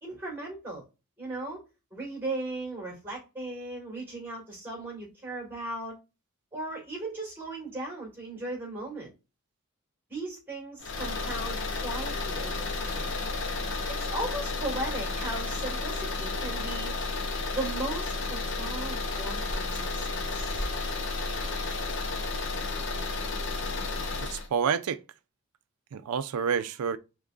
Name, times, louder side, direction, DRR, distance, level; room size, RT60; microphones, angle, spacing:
voice 1, 0.0-0.8 1.2-1.6 1.9-6.0 6.5-9.1 10.1-13.2 13.9-16.9 17.5-20.7, right 2 dB, 10° right, 2.0 m, -37 dB
sound 1, 10.8-24.5, left 3 dB, 55° left, 0.7 m, -32 dB
voice 2, 24.2-25.0 25.9-27.0, right 7 dB, 85° right, 0.4 m, -28 dB
3.6 x 3.1 x 2.4 m
head